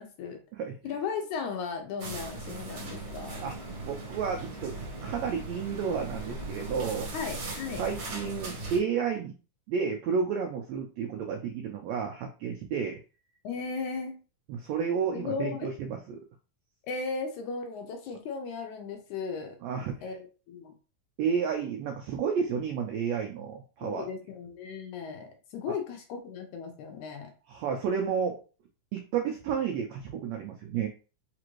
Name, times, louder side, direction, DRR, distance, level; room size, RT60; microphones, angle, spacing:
voice 1, 0.0-0.4 0.8-3.5 7.1-7.8 13.4-14.2 15.1-15.7 16.8-19.6 20.0-20.8 23.8-27.3, left 5 dB, 75° left, 4 dB, 1.9 m, -36 dB
sound 1, 2.0-8.8, right 2 dB, 55° right, 1.3 m, -39 dB
voice 2, 3.8-4.7 5.0-7.1 7.8-9.3 9.7-13.0 14.5-16.2 19.6-20.0 21.2-24.1 27.5-28.4 28.9-30.9, right 6 dB, 85° right, 3 dB, 1.5 m, -31 dB
5.0 x 2.5 x 3.0 m, 0.35 s
omnidirectional pair, 3.7 m